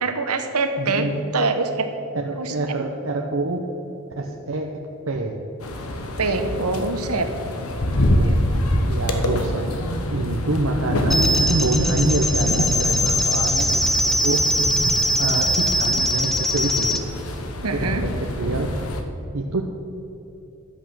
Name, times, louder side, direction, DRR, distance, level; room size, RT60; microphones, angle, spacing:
voice 1, 0.0-1.1 1.3-1.9 2.3-2.5 6.2-7.3 17.6-18.0, right 3 dB, 85° right, 7 dB, 1.1 m, -24 dB
voice 2, 0.8-1.2 2.1-3.6 4.2-5.4 8.2-8.5 8.8-9.7 10.1-14.4 15.2-16.9 17.7-18.7 19.3-19.6, right 2 dB, 65° right, 1 dB, 0.8 m, -26 dB
sound 1, 5.6-19.0, left 1 dB, 75° left, 1.2 m, -25 dB
sound 2, 11.1-17.0, equal, ahead, 0.5 m, -22 dB
11.5 x 8.2 x 6.3 m, 3.0 s
head